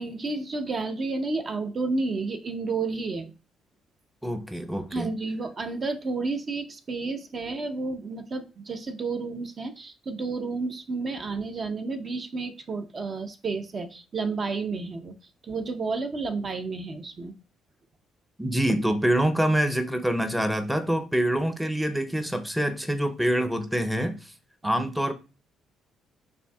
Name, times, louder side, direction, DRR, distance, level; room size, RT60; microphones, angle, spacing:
voice 1, 0.0-3.3 4.9-15.1 15.4-17.3, right 3 dB, 40° right, 0.6 m, -31 dB
voice 2, 4.2-5.1 18.4-24.3 24.6-25.1, right 1 dB, 5° right, 0.6 m, -25 dB
6.8 x 2.6 x 2.3 m
cardioid pair, 80°, 0 cm